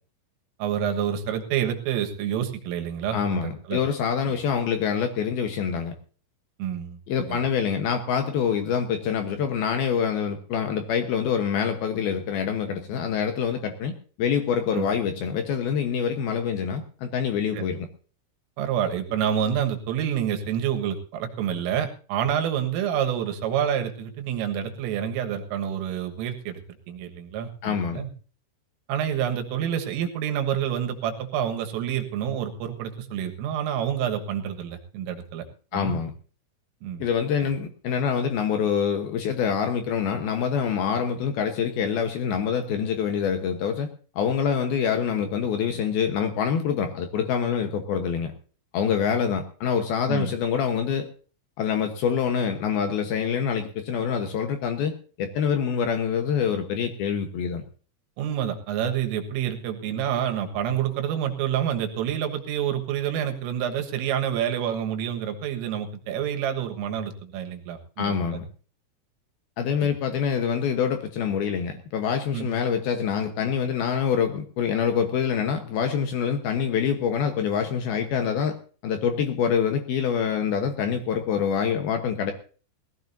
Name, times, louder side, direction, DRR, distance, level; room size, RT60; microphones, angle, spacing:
voice 1, 0.6-3.8 6.6-7.0 7.3-7.4 14.7-14.9 17.5-17.7 18.6-26.6 26.9-28.1 28.9-35.5 35.7-36.0 36.8-37.1 50.1-50.3 58.2-68.4 69.8-69.9 72.3-72.5, right 9 dB, 80° right, 6 dB, 4.0 m, -28 dB
voice 2, 3.1-5.9 7.1-13.9 14.2-17.9 27.6-28.0 35.7-36.1 37.0-43.9 44.2-48.3 48.7-51.1 51.6-57.6 68.0-68.5 69.6-78.6 78.8-82.3, left 7 dB, 75° left, 6 dB, 2.2 m, -25 dB
20.5 x 15.5 x 2.7 m, 0.38 s
omnidirectional pair, 6.0 m